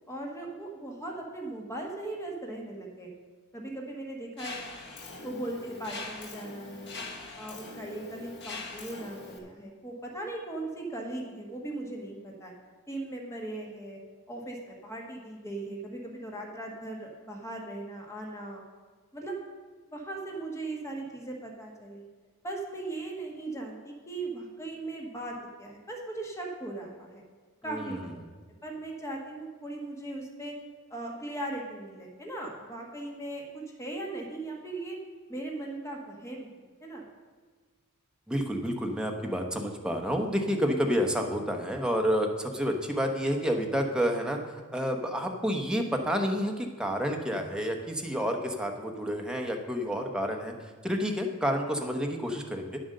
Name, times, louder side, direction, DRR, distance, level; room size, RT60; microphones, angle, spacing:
voice 1, 0.1-3.1 3.5-4.6 5.2-6.9 7.4-12.5 12.9-14.0 14.3-18.6 19.1-19.4 19.9-22.1 22.4-27.2 27.6-28.3 28.6-30.5 30.9-35.0 35.3-36.5 36.8-37.0, right 2 dB, 15° left, -1 dB, 1.4 m, -38 dB
Mechanisms, 4.4-9.4, left 3 dB, 50° left, 1.4 m, -42 dB
voice 2, 27.7-28.1 38.3-52.8, equal, 5° right, 2 dB, 0.9 m, -29 dB
9.4 x 7.6 x 6.5 m, 1.4 s
head